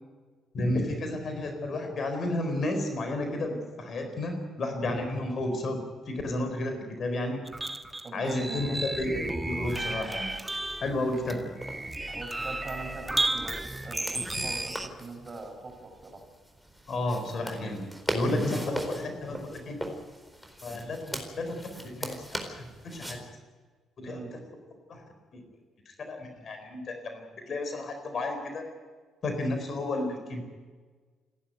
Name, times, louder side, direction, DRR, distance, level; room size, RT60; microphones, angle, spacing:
voice 1, 0.5-7.4 8.1-10.3 10.8-11.4 16.9-19.8 20.6-22.2 22.5-23.2 24.0-24.2 24.9-25.0 25.3-25.4 25.9-28.6 29.2-30.4, left 1 dB, 45° left, 5 dB, 4.3 m, -32 dB
sound 1, 7.4-14.9, right 2 dB, 15° right, 1.4 m, -33 dB
voice 2, 8.0-8.8 10.9-11.1 12.1-16.2 24.0-24.3, right 3 dB, 35° right, 2 dB, 7.0 m, -42 dB
sound 2, 9.5-23.2, equal, ahead, 4.3 m, -41 dB
28.5 x 11.5 x 9.3 m, 1.4 s
figure-of-eight pair, 45°, 0 cm